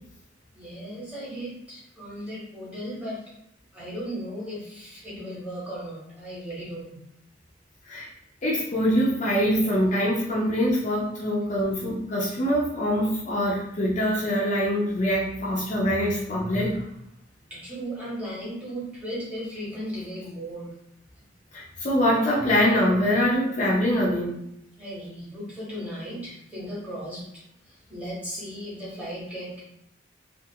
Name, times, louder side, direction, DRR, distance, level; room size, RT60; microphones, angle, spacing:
voice 1, 0.5-3.3 3.7-7.0 17.5-20.7 24.8-27.2 27.6-29.6, equal, 5° right, -8 dB, 0.9 m, -36 dB
voice 2, 8.4-16.8 21.5-24.4, equal, 40° left, -5 dB, 0.5 m, -24 dB
2.4 x 2.3 x 2.7 m, 0.78 s
head